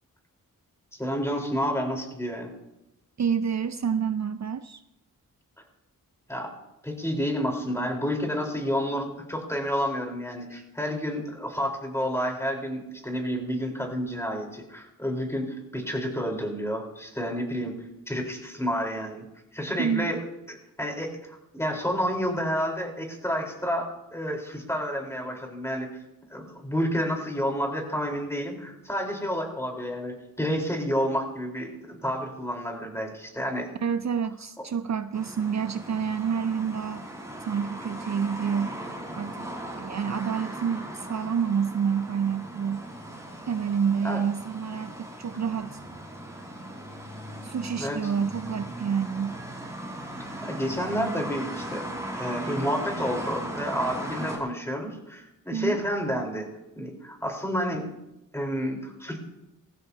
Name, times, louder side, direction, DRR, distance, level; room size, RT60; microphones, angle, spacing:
voice 1, 1.0-2.5 6.3-6.5 6.8-17.7 18.1-19.2 19.5-20.2 20.5-25.9 26.3-33.7 44.0-44.2 47.8-48.1 50.4-51.8 52.1-56.5 56.8-57.9 58.3-59.2, equal, 5° left, 1 dB, 4.2 m, -30 dB
voice 2, 3.2-4.8 10.5-10.6 19.8-20.1 33.8-37.1 37.5-38.8 39.1-39.5 39.8-42.9 43.5-45.8 47.4-49.4 55.5-55.8, right 7 dB, 50° right, 11 dB, 0.6 m, -28 dB
sound 1, 35.1-54.4, right 1 dB, 10° right, 4.8 m, -38 dB
20.5 x 15.5 x 2.9 m, 0.91 s
cardioid pair, 75°, 35 cm